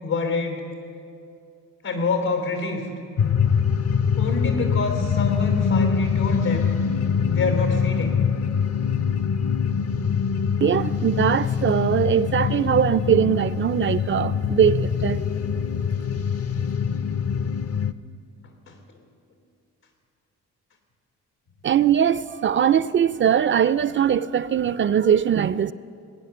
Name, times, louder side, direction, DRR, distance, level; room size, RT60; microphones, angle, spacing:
voice 1, 0.0-0.6 1.8-2.9 4.2-6.7 7.2-8.2 9.3-9.4 18.7-18.8, left 3 dB, 85° left, 3.0 m, -27 dB
sound 1, 3.2-17.9, left 6 dB, 45° left, 0.7 m, -24 dB
voice 2, 10.6-15.2 21.6-25.7, right 8 dB, 35° right, 0.4 m, -21 dB
19.5 x 9.1 x 6.9 m
supercardioid pair, 55°, 35 cm